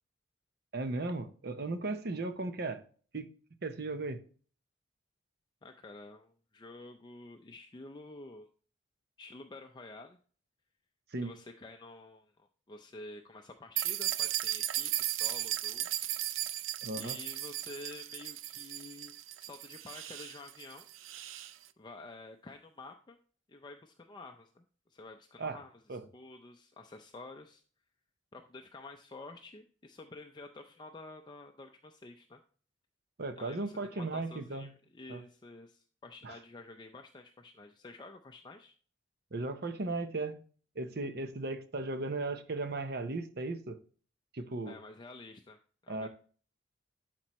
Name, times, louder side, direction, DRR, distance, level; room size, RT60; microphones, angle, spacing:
voice 1, 0.7-2.8 3.1-3.3 3.6-4.2 11.1-11.3 16.8-17.2 25.4-25.6 25.9-26.0 33.2-34.7 35.1-35.2 36.2-36.4 39.3-40.4 40.8-43.8 44.3-44.8 45.9-46.1, right 2 dB, 55° right, 0.7 m, -36 dB
voice 2, 5.6-8.5 9.2-10.2 11.2-15.9 17.0-20.9 21.8-23.2 23.5-27.6 28.3-32.4 33.4-38.8 44.7-45.6 45.8-46.1, left 2 dB, 20° left, 0.4 m, -50 dB
sound 1, 13.8-21.5, right 14 dB, 85° right, 0.4 m, -36 dB
11.5 x 4.4 x 3.0 m
head